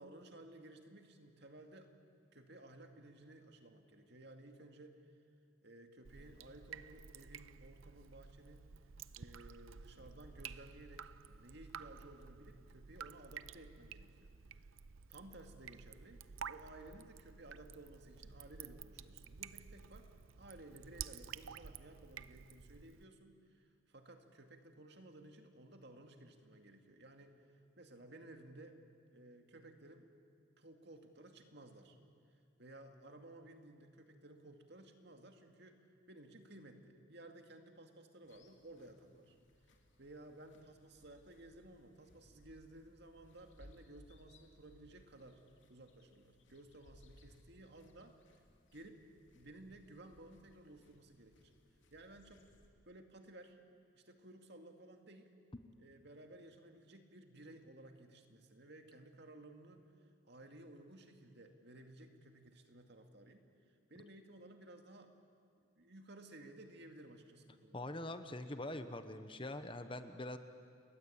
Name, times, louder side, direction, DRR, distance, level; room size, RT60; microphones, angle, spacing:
voice 1, 0.0-1.9 2.3-5.1 5.6-8.7 9.1-14.6 15.1-20.1 20.4-28.8 29.1-30.1 30.6-32.0 32.6-35.8 36.1-39.4 40.0-45.4 45.7-48.4 48.7-49.0 49.3-51.5 51.9-52.5 52.8-53.6 53.9-55.3 55.8-59.9 60.2-63.4 63.9-65.1 65.8-67.9, right 1 dB, 55° right, 5 dB, 2.3 m, -56 dB
Drip, 6.0-23.0, right 7 dB, 90° right, 0.7 m, -52 dB
sound 1, 38.2-52.7, left 1 dB, 70° left, 2.8 m, -66 dB
voice 2, 67.7-70.4, left 1 dB, 25° left, 9 dB, 1.0 m, -44 dB
29.5 x 22.0 x 8.7 m, 2.3 s
head